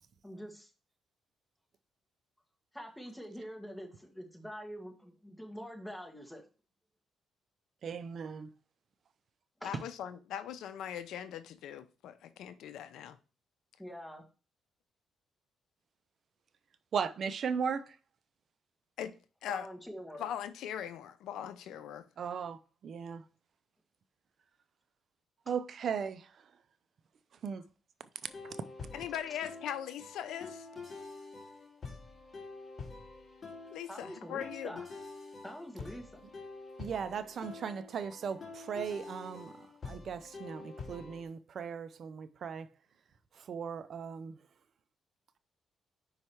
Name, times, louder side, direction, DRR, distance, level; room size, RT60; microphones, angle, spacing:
voice 1, 0.2-0.7 2.7-6.4 9.6-9.8 13.8-14.2 19.5-20.2 33.9-34.9 35.4-36.2, equal, 5° left, 1.7 m, -45 dB
voice 2, 7.8-8.5 16.9-18.0 22.2-23.2 25.5-26.3 27.4-27.6 28.4-28.5 36.8-42.7 43.4-44.4, right 6 dB, 55° right, 0.5 m, -37 dB
voice 3, 9.6-13.2 19.0-19.1 19.4-19.7 20.2-22.1 28.9-30.7 33.7-34.8, left 10 dB, 85° left, 0.6 m, -40 dB
sound 1, 28.3-41.2, left 3 dB, 35° left, 2.1 m, -47 dB
5.4 x 4.8 x 4.5 m
cardioid pair, 100°, 0 cm